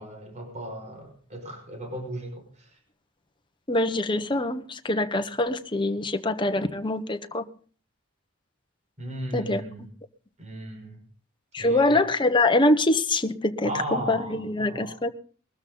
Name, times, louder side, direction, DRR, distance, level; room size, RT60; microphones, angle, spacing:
voice 1, 0.0-2.7 9.0-9.9 10.4-11.0 11.6-12.0 13.6-15.0, right 1 dB, 35° right, 5.6 m, -36 dB
voice 2, 3.7-7.5 9.3-9.6 11.5-15.1, left 2 dB, 25° left, 1.2 m, -24 dB
22.0 x 13.5 x 4.0 m
head